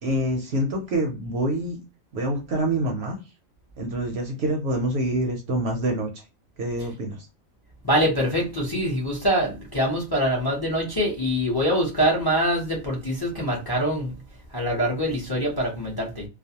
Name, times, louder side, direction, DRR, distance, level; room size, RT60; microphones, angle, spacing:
voice 1, 0.0-1.8 2.1-3.2 3.8-6.2 6.6-7.3, right 1 dB, 60° right, 0.7 m, -26 dB
voice 2, 7.8-14.1 14.5-16.3, equal, 25° left, 0.6 m, -24 dB
2.4 x 2.1 x 2.7 m
omnidirectional pair, 1.4 m